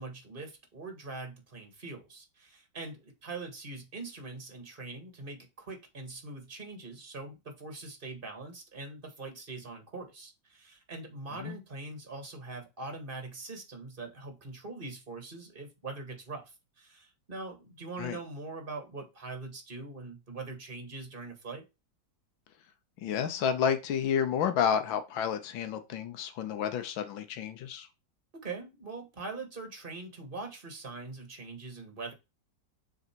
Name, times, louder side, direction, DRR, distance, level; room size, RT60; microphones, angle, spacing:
voice 1, 0.0-21.6 28.3-32.1, right 3 dB, 30° right, 5 dB, 1.8 m, -42 dB
voice 2, 23.0-27.9, left 8 dB, 85° left, 8 dB, 1.6 m, -30 dB
6.7 x 4.0 x 4.5 m, 0.25 s
omnidirectional pair, 2.1 m